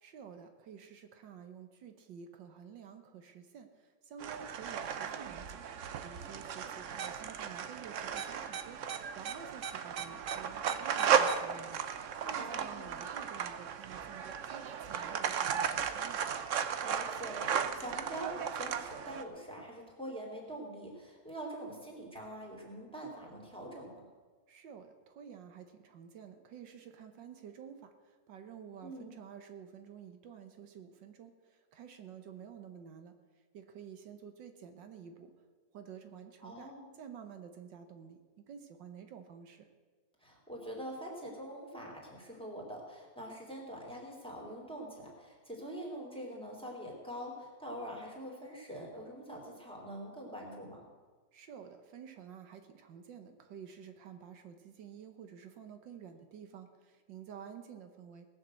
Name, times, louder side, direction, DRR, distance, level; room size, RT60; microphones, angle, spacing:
voice 1, 0.0-11.8 12.2-16.2 24.5-33.1 33.5-35.3 35.7-38.2 38.5-39.7 51.3-58.3, right 7 dB, 75° right, 7 dB, 1.6 m, -51 dB
sound 1, 4.2-19.2, right 7 dB, 55° right, 0.9 m, -35 dB
voice 2, 12.4-13.0 16.8-23.9 28.8-29.1 36.4-36.9 40.2-50.9, equal, 5° left, -2 dB, 3.4 m, -44 dB
18.5 x 7.3 x 7.7 m, 1.4 s
omnidirectional pair, 2.0 m